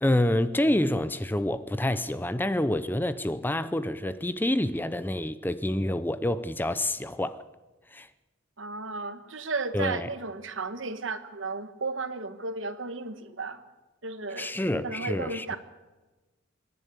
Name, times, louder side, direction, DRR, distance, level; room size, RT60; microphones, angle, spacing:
voice 1, 0.0-7.4 7.9-8.1 9.7-10.1 14.4-15.6, left 1 dB, 10° left, 0.6 m, -27 dB
voice 2, 8.6-13.6 14.0-15.6, right 3 dB, 70° right, 1.5 m, -34 dB
25.0 x 11.0 x 9.9 m
head